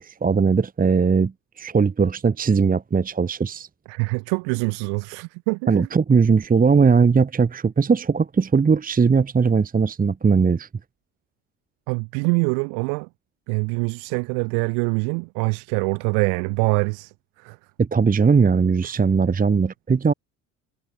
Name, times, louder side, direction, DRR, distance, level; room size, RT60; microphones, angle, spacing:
voice 1, 0.0-3.7 5.7-10.7 17.8-20.1, right 5 dB, 20° right, 0.9 m, -19 dB
voice 2, 3.9-5.9 11.9-13.1 13.5-17.6, right 37 dB, 80° right, 1.3 m, -24 dB
hypercardioid pair, 65°, 39 cm